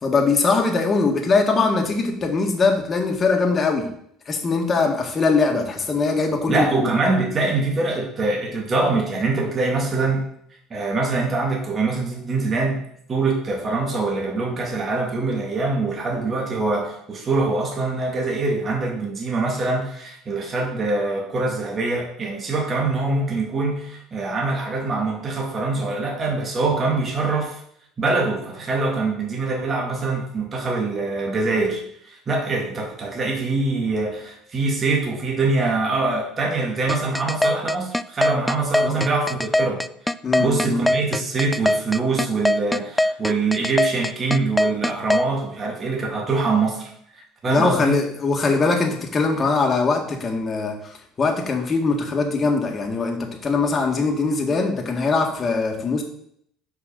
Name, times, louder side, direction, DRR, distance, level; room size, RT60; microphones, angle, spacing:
voice 1, 0.0-3.9 4.3-6.9 38.8-39.1 40.2-40.8 47.4-56.0, left 4 dB, 30° left, 2 dB, 1.9 m, -21 dB
voice 2, 6.5-10.2 10.7-12.8 13.1-27.6 28.0-39.8 40.4-46.9 47.4-48.0, right 3 dB, 30° right, 0 dB, 2.2 m, -24 dB
sound 1, 36.9-45.2, left 1 dB, 5° left, 0.3 m, -20 dB
6.0 x 5.5 x 6.7 m, 0.69 s
cardioid pair, 110°, 0 cm